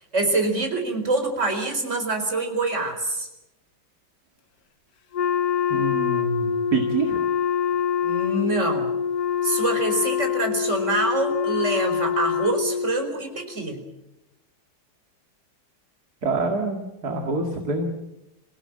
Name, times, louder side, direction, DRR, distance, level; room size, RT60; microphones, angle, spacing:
voice 1, 0.1-3.3 8.0-8.9 9.4-13.8, right 2 dB, 35° right, 5 dB, 4.7 m, -25 dB
Wind instrument woodwind instrument, 5.1-13.1, left 8 dB, 55° left, 1.5 m, -25 dB
voice 2, 5.7-7.2 16.2-17.8, right 3 dB, 55° right, 3 dB, 2.8 m, -26 dB
28.0 x 17.0 x 8.9 m, 0.93 s
omnidirectional pair, 2.1 m